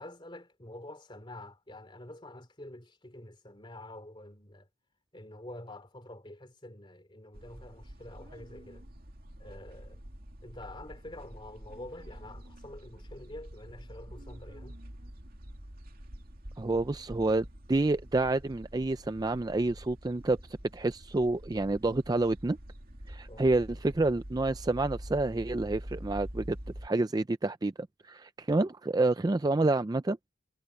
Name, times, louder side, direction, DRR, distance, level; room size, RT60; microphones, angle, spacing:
voice 1, 0.0-4.7 5.1-8.8 9.4-10.0 10.4-14.8 23.3-23.5, left 1 dB, 25° left, 3.0 m, -47 dB
sound 1, 7.3-26.9, equal, 45° right, 2.6 m, -46 dB
voice 2, 16.6-20.4 20.7-22.6 23.1-26.6 26.8-27.7 28.0-30.2, right 2 dB, 20° right, 0.4 m, -28 dB
head